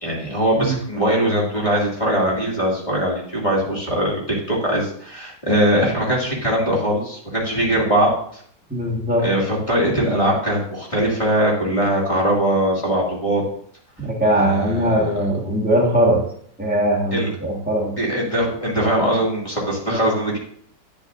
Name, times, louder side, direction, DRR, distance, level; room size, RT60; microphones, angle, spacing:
voice 1, 0.0-8.1 9.2-13.4 14.3-15.2 17.1-17.3 18.0-20.4, equal, 20° left, -5 dB, 2.4 m, -21 dB
voice 2, 8.7-9.3 14.0-16.2 16.6-17.9 19.9-20.0, right 1 dB, 5° right, -4 dB, 1.3 m, -20 dB
9.8 x 9.3 x 2.6 m, 0.62 s
omnidirectional pair, 1.9 m